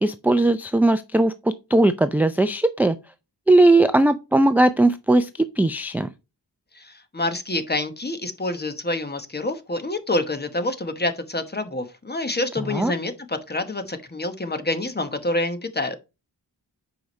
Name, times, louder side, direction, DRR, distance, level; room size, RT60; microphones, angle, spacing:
voice 1, 0.0-3.0 3.5-5.3 5.6-6.1 12.7-12.9, right 2 dB, 5° right, 0.4 m, -18 dB
voice 2, 6.7-16.0, left 2 dB, 25° left, 1.1 m, -27 dB
7.9 x 5.0 x 3.1 m
wide cardioid pair, 105°, 40 cm